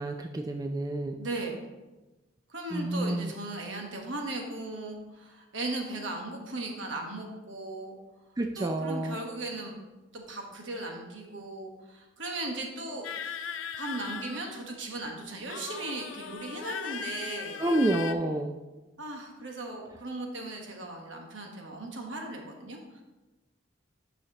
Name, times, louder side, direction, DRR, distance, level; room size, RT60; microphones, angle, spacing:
voice 1, 0.0-1.2 2.7-3.3 8.4-9.2 17.6-18.5, right 1 dB, 20° right, 4 dB, 0.3 m, -29 dB
voice 2, 1.2-1.7 2.5-8.0 8.6-9.8 10.1-13.1 13.8-17.6 19.0-23.0, right 2 dB, 75° right, 1 dB, 1.2 m, -37 dB
sound 1, 13.0-14.9 15.5-18.1, left 7 dB, 80° left, 0.5 m, -39 dB
9.4 x 5.7 x 2.9 m, 1.1 s
head